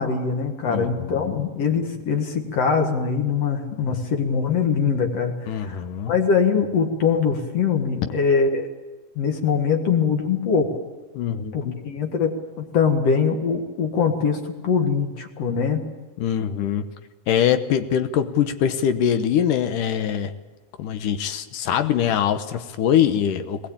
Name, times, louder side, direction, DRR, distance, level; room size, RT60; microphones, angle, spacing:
voice 1, 0.0-5.8 6.1-8.7 9.2-10.7 11.5-15.8, left 6 dB, 50° left, 4 dB, 2.5 m, -22 dB
voice 2, 0.7-1.4 5.5-6.1 11.1-11.8 16.2-16.9 17.3-20.3 20.8-23.7, left 9 dB, 75° left, 9 dB, 2.4 m, -23 dB
20.5 x 19.5 x 8.6 m, 1.2 s
omnidirectional pair, 3.9 m